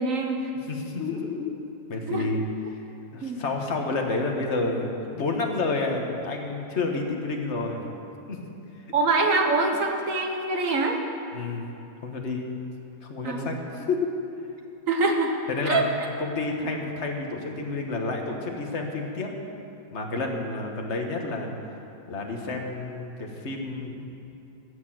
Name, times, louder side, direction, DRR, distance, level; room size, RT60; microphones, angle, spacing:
voice 1, 0.0-0.5 2.1-2.3 3.2-3.4 8.9-11.0 13.2-13.5 14.9-15.3 15.7-15.9, right 3 dB, 50° right, 3 dB, 1.5 m, -24 dB
voice 2, 0.7-1.5 1.9-2.4 2.7-2.8 3.1-7.9 8.3-8.4 11.3-11.7 12.0-12.5 13.0-14.1 15.5-15.8 16.2-19.3 19.9-21.5 22.1-24.2, left 3 dB, 40° left, 1 dB, 1.5 m, -30 dB
16.0 x 6.6 x 7.7 m, 2.8 s
omnidirectional pair, 2.0 m